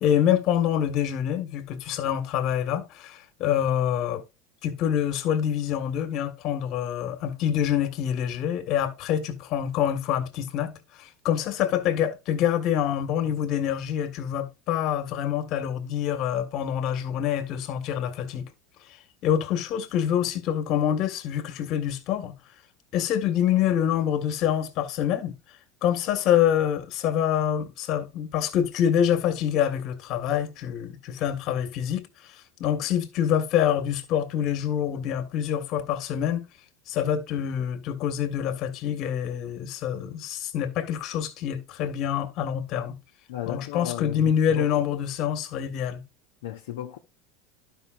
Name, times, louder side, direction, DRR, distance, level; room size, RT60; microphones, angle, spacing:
voice 1, 0.0-4.2 4.6-10.7 11.0-18.5 19.2-22.4 22.9-25.3 25.8-32.1 32.6-36.5 36.9-43.0 43.5-46.1, left 9 dB, 50° left, 1.7 m, -26 dB
voice 2, 43.3-44.8 46.4-47.0, left 12 dB, 75° left, 0.9 m, -35 dB
12.0 x 5.6 x 2.5 m
hypercardioid pair, 90°, 0 cm